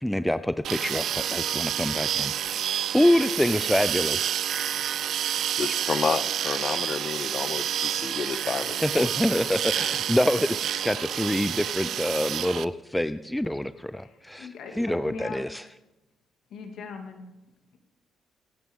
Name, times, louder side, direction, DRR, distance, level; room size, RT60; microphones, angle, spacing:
voice 1, 0.0-4.3 8.8-14.5 14.8-15.6, left 1 dB, 5° left, 12 dB, 0.4 m, -26 dB
sound 1, 0.6-12.6, right 10 dB, 70° right, 0.4 m, -29 dB
voice 2, 5.6-9.1, left 5 dB, 45° left, 14 dB, 0.8 m, -30 dB
voice 3, 14.0-15.4 16.5-17.3, left 5 dB, 75° left, 4 dB, 2.1 m, -40 dB
24.5 x 9.3 x 3.6 m, 0.96 s
cardioid pair, 90°, 0 cm